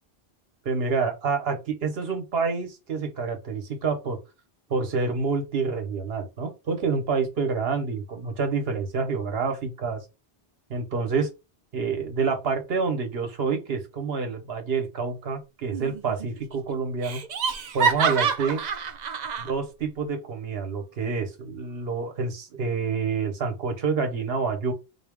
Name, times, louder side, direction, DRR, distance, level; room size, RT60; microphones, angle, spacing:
voice 1, 0.6-4.2 4.7-10.0 10.7-11.3 11.7-17.2 17.7-18.6 19.4-24.7, right 5 dB, 65° right, 1.1 m, -28 dB
Laughter, 15.7-16.3 16.5-16.6 17.0-19.5, right 6 dB, 50° right, 0.6 m, -27 dB
4.0 x 2.2 x 3.5 m
omnidirectional pair, 1.1 m